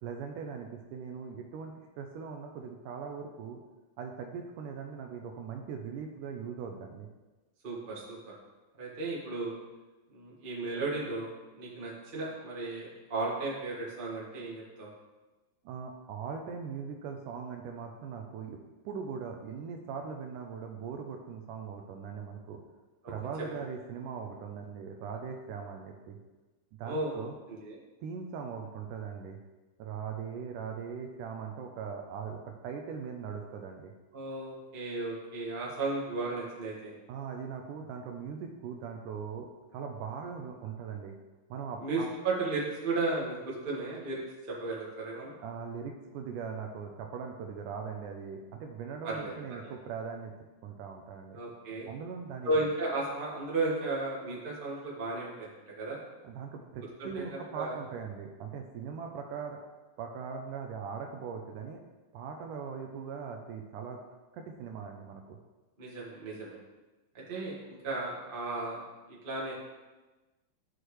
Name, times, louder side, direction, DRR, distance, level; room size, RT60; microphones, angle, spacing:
voice 1, 0.0-3.6 4.0-7.1 15.7-22.6 23.1-26.2 26.8-27.4 28.0-29.4 29.8-33.9 37.1-41.1 41.5-42.1 45.4-50.3 50.6-51.4 51.9-52.6 56.2-59.6 60.0-61.8 62.1-64.0 64.3-65.4, right 6 dB, 80° right, 3 dB, 2.1 m, -40 dB
voice 2, 7.6-8.2 8.8-9.5 10.1-14.9 23.0-23.1 26.8-27.2 27.5-27.8 34.1-36.9 41.8-45.3 49.0-49.3 49.6-49.7 51.3-51.9 52.4-56.0 57.0-57.7 65.8-66.6 67.1-68.8 69.1-69.5, right 2 dB, 25° right, -5 dB, 1.1 m, -34 dB
12.0 x 6.2 x 3.2 m, 1.2 s
omnidirectional pair, 4.0 m